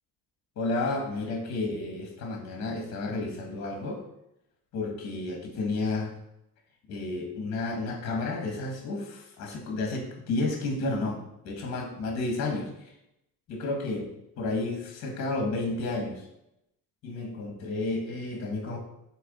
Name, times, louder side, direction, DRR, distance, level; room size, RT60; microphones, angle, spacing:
voice 1, 0.6-4.0 4.7-6.1 6.9-12.9 13.5-14.1 14.4-16.2 17.0-18.8, left 2 dB, 45° left, 1 dB, 1.5 m, -31 dB
7.7 x 3.0 x 4.1 m, 0.84 s
cardioid pair, 175°, 36 cm